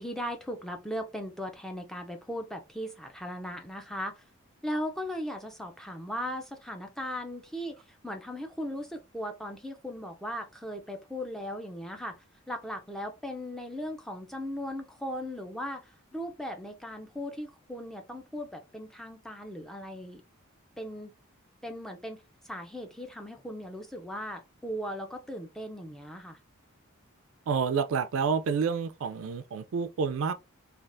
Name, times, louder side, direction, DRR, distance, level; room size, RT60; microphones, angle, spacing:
voice 1, 0.0-4.2 4.6-20.2 20.8-21.1 21.6-26.4, equal, ahead, 0.3 m, -38 dB
voice 2, 27.5-30.3, right 5 dB, 70° right, 0.3 m, -29 dB
3.3 x 2.4 x 2.5 m
head